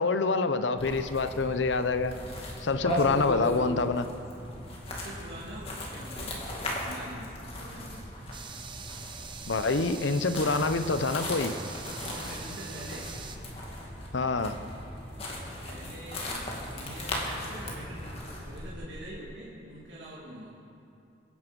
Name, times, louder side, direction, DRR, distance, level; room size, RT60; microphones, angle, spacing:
voice 1, 0.0-2.2 2.6-4.1 9.5-11.5 14.1-14.6, left 3 dB, 80° left, 11 dB, 0.7 m, -26 dB
sound 1, 0.8-18.7, left 1 dB, 30° left, 2.3 m, -37 dB
voice 2, 4.9-6.4 6.8-8.1 12.0-13.1 15.3-16.3 16.7-20.5, right 1 dB, 70° right, -7 dB, 2.6 m, -44 dB
sound 2, 8.3-13.4, right 6 dB, 25° right, 0.8 m, -44 dB
23.5 x 9.6 x 5.3 m, 2.7 s
head